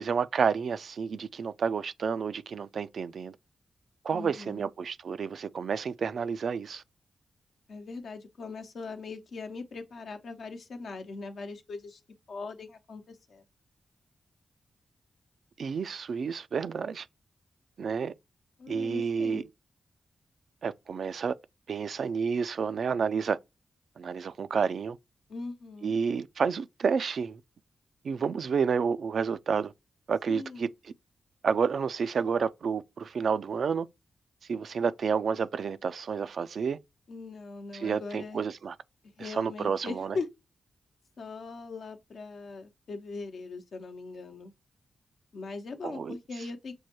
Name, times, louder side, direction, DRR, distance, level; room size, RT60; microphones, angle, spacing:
voice 1, 0.0-3.4 4.0-6.8 15.6-17.1 17.8-18.1 18.7-19.4 20.6-21.3 21.7-23.4 24.0-25.0 25.8-27.4 28.0-29.7 30.1-30.9 31.4-33.9 34.5-36.8 37.7-38.8 39.2-40.2 45.8-46.1, right 6 dB, 70° right, 0.3 m, -30 dB
voice 2, 4.1-4.6 7.7-12.0 12.3-13.4 18.6-19.5 25.3-25.9 30.3-30.7 37.1-38.4 39.2-40.3 41.2-44.5 45.3-46.7, left 4 dB, 75° left, 0.8 m, -40 dB
6.2 x 2.2 x 2.9 m
supercardioid pair, 45°, 0 cm